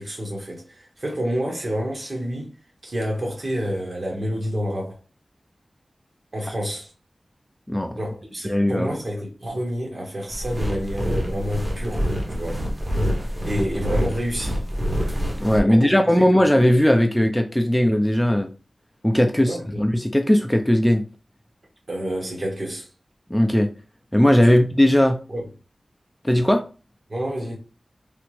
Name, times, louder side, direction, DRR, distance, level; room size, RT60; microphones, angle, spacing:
voice 1, 0.0-2.5 2.8-5.0 6.3-6.9 8.0-12.6 13.4-14.6 15.6-16.2 19.4-19.8 21.9-22.9 24.4-24.5 25.3-25.4 27.1-27.5, equal, 55° right, 1.2 m, -29 dB
voice 2, 7.7-8.0 8.4-9.0 15.4-18.5 19.0-21.0 23.3-23.7 24.1-25.2 26.2-26.6, equal, 10° left, 0.4 m, -18 dB
sound 1, 10.3-15.6, equal, 30° right, 0.9 m, -26 dB
3.3 x 2.0 x 3.1 m
wide cardioid pair, 65°, 0 cm